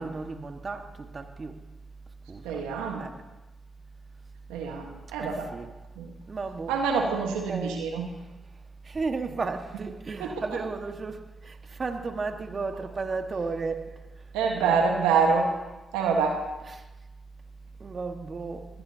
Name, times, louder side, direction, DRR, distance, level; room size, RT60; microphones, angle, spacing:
voice 1, 0.0-1.6 2.3-2.6 3.0-3.1 5.2-5.7 6.3-6.7 7.1-7.2 7.5-7.8 8.2-8.3 8.8-14.0 14.6-14.8 16.8-16.9 17.8-18.7, right 4 dB, 45° right, 5 dB, 1.6 m, -34 dB
voice 2, 2.4-3.1 4.5-5.5 6.0-6.1 6.7-8.1 10.2-10.6 14.3-15.5 15.9-16.4, right 5 dB, 85° right, 2 dB, 1.4 m, -26 dB
20.0 x 18.0 x 2.9 m, 1.1 s
hypercardioid pair, 40°, 0 cm